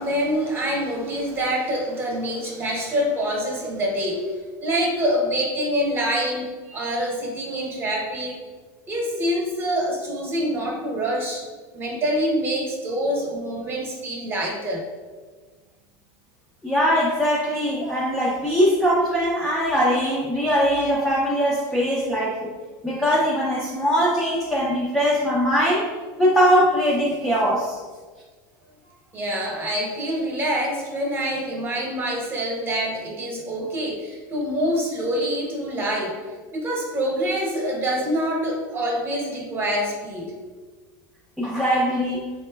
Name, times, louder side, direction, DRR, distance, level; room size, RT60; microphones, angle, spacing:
voice 1, 0.0-4.3 4.6-8.4 8.9-11.4 11.7-14.8 29.1-36.2 36.5-40.3, equal, 25° right, -1 dB, 0.9 m, -26 dB
voice 2, 16.6-22.5 22.8-25.9 26.2-27.8 41.4-42.3, equal, ahead, -6 dB, 0.4 m, -21 dB
4.1 x 2.9 x 2.2 m, 1.4 s
supercardioid pair, 135°, 9 cm